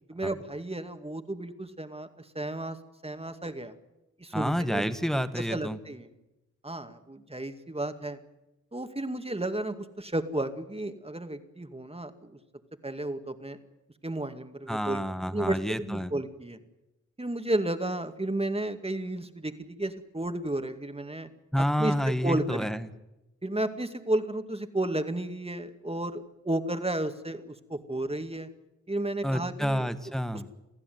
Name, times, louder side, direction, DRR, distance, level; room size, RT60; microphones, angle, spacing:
voice 1, 0.1-2.1 2.4-2.8 3.0-3.7 4.2-4.8 5.4-6.1 6.6-8.2 8.7-12.4 12.8-13.6 14.0-16.6 17.2-21.3 21.8-21.9 22.2-22.7 23.4-28.5 28.9-29.9, right 1 dB, 20° right, 7 dB, 2.2 m, -32 dB
voice 2, 4.3-5.8 14.7-16.1 21.5-22.9 29.2-30.5, equal, ahead, 10 dB, 1.6 m, -29 dB
27.5 x 16.0 x 9.5 m, 0.96 s
wide cardioid pair, 90°, 29 cm